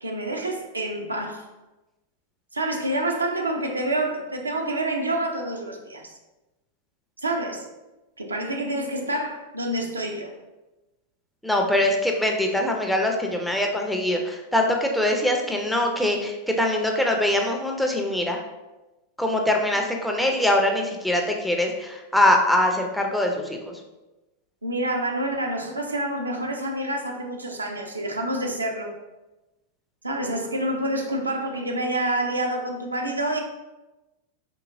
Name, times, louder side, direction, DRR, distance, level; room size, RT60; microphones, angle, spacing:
voice 1, 0.0-1.5 2.5-6.2 7.2-7.7 8.2-10.3 24.6-28.9 30.0-33.4, right 1 dB, 80° right, 2 dB, 0.4 m, -27 dB
voice 2, 11.4-18.4 19.2-23.8, left 1 dB, ahead, 1 dB, 0.4 m, -23 dB
3.7 x 2.7 x 2.5 m, 1.1 s
figure-of-eight pair, 90°, 0 cm